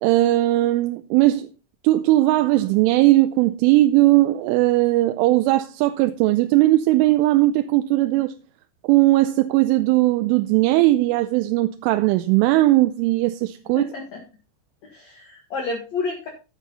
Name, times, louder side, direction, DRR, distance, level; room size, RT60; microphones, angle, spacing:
voice 1, 0.0-1.5 1.8-8.4 8.8-13.8, right 17 dB, 85° right, 3.0 m, -18 dB
voice 2, 13.8-14.2 14.9-16.3, left 4 dB, 60° left, 1.9 m, -30 dB
11.0 x 8.1 x 4.1 m
omnidirectional pair, 5.7 m